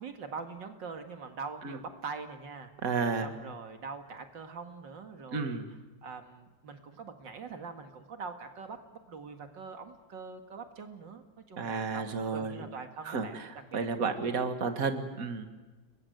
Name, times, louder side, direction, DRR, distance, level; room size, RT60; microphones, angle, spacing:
voice 1, 0.0-2.7 3.2-5.6 6.0-8.8 9.1-13.3 13.7-14.6, right 5 dB, 85° right, 6 dB, 2.6 m, -43 dB
voice 2, 2.8-3.3 5.3-5.7 11.6-12.6 13.0-13.4 13.7-15.5, right 4 dB, 50° right, 7 dB, 2.3 m, -32 dB
30.0 x 22.5 x 7.9 m, 1.2 s
omnidirectional pair, 1.9 m